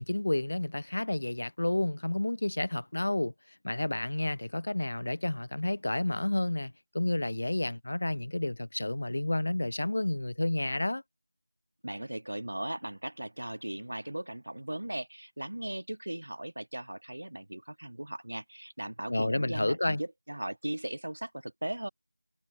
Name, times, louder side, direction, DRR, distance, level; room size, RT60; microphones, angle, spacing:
voice 1, 0.0-3.3 3.6-11.0 19.1-20.0, left 1 dB, 45° left, 4.9 m, -30 dB
voice 2, 11.8-21.9, right 1 dB, 65° right, 6.1 m, -38 dB
figure-of-eight pair, 175°, 0 cm